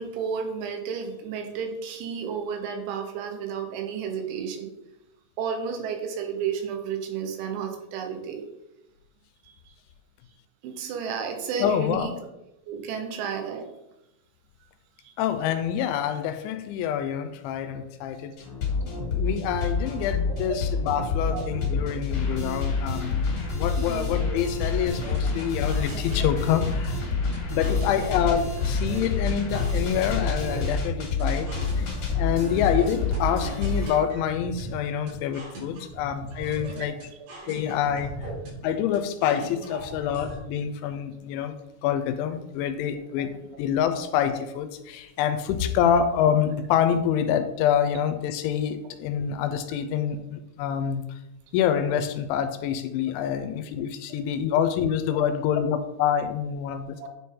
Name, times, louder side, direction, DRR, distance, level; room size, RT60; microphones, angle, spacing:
voice 1, 0.0-4.7 5.4-8.5 9.7-9.8 10.6-12.1 12.7-13.7 15.0-15.2 20.3-20.4 21.3-21.5 23.8-24.1 24.8-24.9 25.8-25.9 27.7-28.3 36.7-37.0 43.2-43.3 53.4-53.5 57.0-57.1, right 6 dB, 90° right, 4 dB, 3.4 m, -32 dB
voice 2, 11.6-12.1 15.2-18.3 19.1-23.3 23.5-27.0 27.5-31.5 31.8-37.0 37.5-38.3 38.6-41.6 41.8-51.0 51.5-57.1, left 9 dB, 90° left, 9 dB, 3.0 m, -26 dB
sound 1, 18.4-33.9, left 4 dB, 50° left, 2.2 m, -28 dB
sound 2, 24.9-40.4, right 2 dB, 65° right, 4.6 m, -39 dB
9.6 x 4.3 x 3.7 m, 0.89 s
omnidirectional pair, 5.3 m